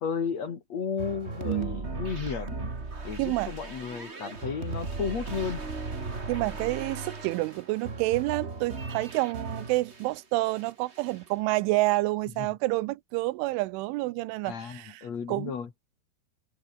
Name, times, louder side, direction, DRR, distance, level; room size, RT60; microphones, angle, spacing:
voice 1, 0.0-2.7 3.0-5.6 12.4-12.5 14.4-15.7, left 6 dB, 40° left, 3.0 m, -33 dB
sound 1, 1.0-10.1 10.5-11.3, right 3 dB, 40° right, 0.9 m, -37 dB
voice 2, 1.4-1.8 3.2-3.5 6.3-15.5, right 20 dB, 80° right, 3.1 m, -29 dB
omnidirectional pair, 5.6 m